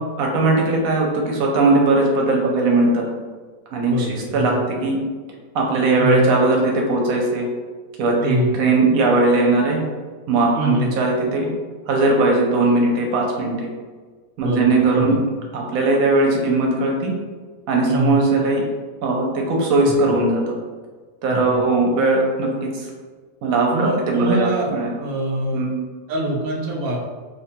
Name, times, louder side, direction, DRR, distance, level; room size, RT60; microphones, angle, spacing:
voice 1, 0.2-3.1 3.7-5.0 5.5-7.5 8.0-9.8 10.3-11.5 11.9-13.7 14.4-15.2 15.5-17.1 17.7-18.6 19.0-20.5 21.2-22.7 23.4-24.9 25.5-25.7, right 2 dB, 70° right, -1 dB, 1.0 m, -19 dB
voice 2, 3.9-4.6 5.9-6.2 8.2-8.5 10.5-10.9 14.4-15.2 17.9-18.2 19.8-20.1 21.3-21.6 23.7-24.7 25.0-25.7 26.1-27.0, equal, 85° right, -1 dB, 0.5 m, -24 dB
2.7 x 2.2 x 2.7 m, 1.4 s
omnidirectional pair, 1.6 m